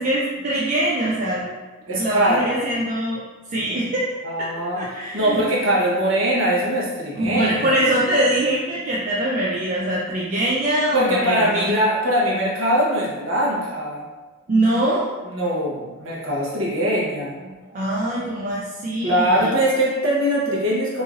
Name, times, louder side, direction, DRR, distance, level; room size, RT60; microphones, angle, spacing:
voice 1, 0.0-1.5 1.9-3.2 3.5-4.1 4.4-4.5 4.8-5.4 7.2-11.7 14.5-15.1 17.7-19.5, right 1 dB, 35° right, -6 dB, 0.3 m, -23 dB
voice 2, 1.9-2.5 4.2-7.9 10.9-14.0 15.2-17.4 19.0-21.0, equal, 60° right, -5 dB, 0.8 m, -22 dB
3.1 x 2.6 x 2.3 m, 1.2 s
head